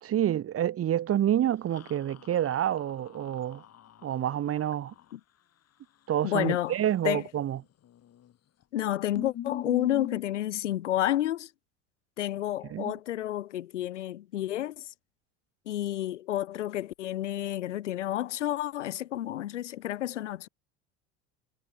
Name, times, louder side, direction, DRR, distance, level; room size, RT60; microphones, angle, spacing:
voice 1, 0.0-3.6 4.0-4.9 6.1-7.6 12.7-12.9, right 11 dB, 40° right, 1.8 m, -28 dB
sound 1, 1.7-5.1 7.8-8.3 8.6-8.7 9.2-10.2, left 11 dB, 45° left, 7.0 m, -42 dB
voice 2, 6.2-6.7 7.0-7.3 8.7-11.5 12.2-14.9 15.7-20.5, left 13 dB, 90° left, 1.9 m, -30 dB
hypercardioid pair, 85°, 35 cm